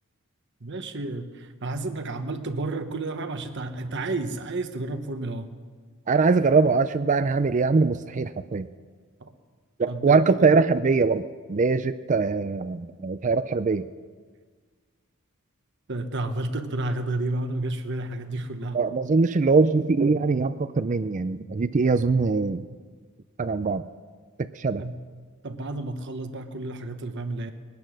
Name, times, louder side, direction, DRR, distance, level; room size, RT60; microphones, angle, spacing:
voice 1, 0.6-5.5 9.2-9.3 9.9-10.4 15.9-18.8 24.8-25.0 25.4-27.5, right 2 dB, 55° right, 7 dB, 1.0 m, -31 dB
voice 2, 6.1-8.7 9.8-11.2 11.5-13.9 18.7-22.6 23.4-23.8 24.4-24.8, right 4 dB, 35° right, 12 dB, 0.4 m, -22 dB
20.5 x 10.5 x 6.3 m, 1.5 s
head